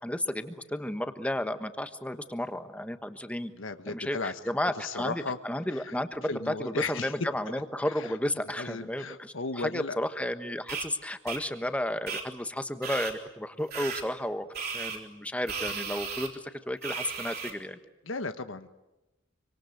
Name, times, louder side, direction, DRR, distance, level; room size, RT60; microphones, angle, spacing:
voice 1, 0.0-3.5 3.9-14.5 14.7-17.8, left 1 dB, 5° left, 9 dB, 1.3 m, -33 dB
voice 2, 3.5-4.4 4.8-5.4 5.7-5.9 6.3-7.1 8.0-8.1 8.6-10.0 10.4-10.5 18.0-18.7, left 3 dB, 90° left, 9 dB, 1.4 m, -35 dB
sound 1, 10.7-10.9 11.3-11.4 12.1-12.2 12.8-13.1 13.7-14.0 14.5-15.0 15.5-16.3 16.8-17.5, right 6 dB, 50° right, 4.0 m, -35 dB
26.5 x 25.5 x 7.9 m, 1.0 s
head